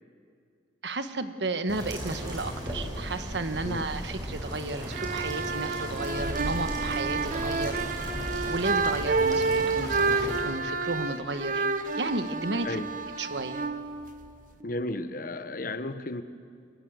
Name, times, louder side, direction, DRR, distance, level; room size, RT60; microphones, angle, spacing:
voice 1, 0.8-7.9 8.2-11.7 11.9-12.8 13.2-13.6, right 2 dB, 80° right, 9 dB, 1.3 m, -33 dB
sound 1, 1.7-10.4, equal, 25° right, 6.3 m, -36 dB
sound 2, 4.8-14.6, right 4 dB, 50° right, 1.0 m, -30 dB
voice 2, 14.6-16.2, left 2 dB, 55° left, 11 dB, 1.0 m, -33 dB
23.5 x 20.5 x 7.7 m, 2.2 s
head